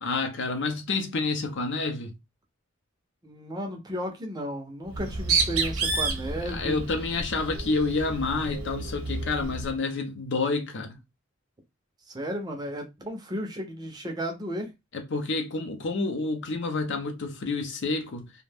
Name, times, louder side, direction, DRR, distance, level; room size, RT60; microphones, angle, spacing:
voice 1, 0.0-2.1 6.5-11.0 14.9-18.3, left 3 dB, 55° left, 0.6 m, -29 dB
voice 2, 3.2-6.8 12.1-14.7, equal, 20° right, 0.5 m, -34 dB
Bird, 4.9-9.7, right 4 dB, 75° right, 0.8 m, -30 dB
2.5 x 2.1 x 3.3 m
head